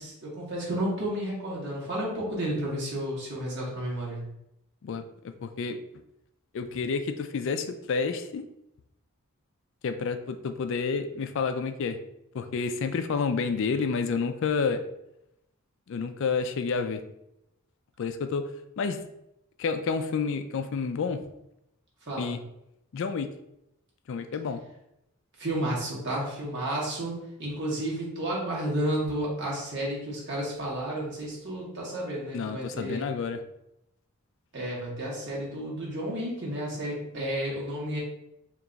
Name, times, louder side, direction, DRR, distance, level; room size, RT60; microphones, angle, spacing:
voice 1, 0.0-4.3 22.0-22.3 25.4-33.1 34.5-38.0, right 1 dB, 55° right, 1.5 m, -32 dB
voice 2, 4.8-5.8 6.5-8.4 9.8-12.0 12.3-14.8 15.9-17.0 18.0-18.5 18.8-19.0 19.6-21.2 22.2-22.4 22.9-23.3 24.1-24.6 32.3-33.4, left 5 dB, 60° left, 0.3 m, -29 dB
3.5 x 2.9 x 3.9 m
head